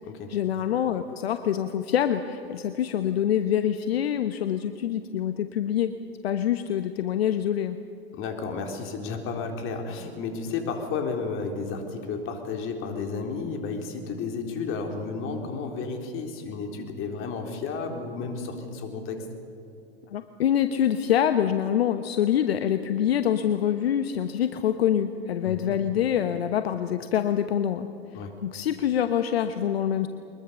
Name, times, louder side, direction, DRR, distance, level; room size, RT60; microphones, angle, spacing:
voice 1, 0.3-5.9 6.2-7.8 20.1-27.9 28.4-30.1, left 10 dB, 75° left, 9 dB, 1.2 m, -25 dB
voice 2, 8.1-19.2 25.4-25.8 28.1-28.4, left 4 dB, 40° left, 4 dB, 3.9 m, -32 dB
23.5 x 21.0 x 7.0 m, 2.6 s
hypercardioid pair, 100°, 31 cm